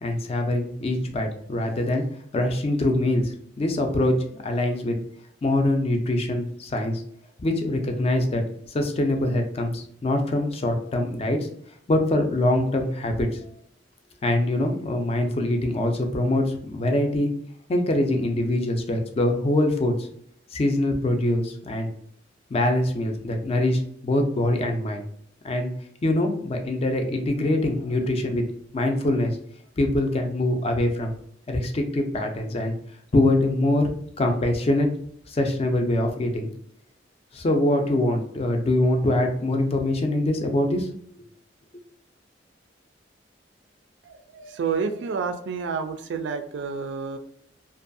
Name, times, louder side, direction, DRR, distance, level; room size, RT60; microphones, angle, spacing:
voice 1, 0.0-2.0 2.3-5.0 5.4-7.0 7.4-8.4 8.7-11.5 11.9-13.4 14.2-17.3 17.7-20.1 20.5-21.9 22.5-25.0 25.4-25.7 26.0-28.5 28.7-29.4 29.8-31.1 31.5-32.7 33.1-33.9 34.2-34.9 35.3-36.5 37.3-40.9, left 1 dB, 35° left, 4 dB, 0.4 m, -24 dB
voice 2, 44.1-47.2, right 5 dB, 70° right, 7 dB, 0.3 m, -29 dB
2.5 x 2.2 x 2.5 m, 0.65 s
head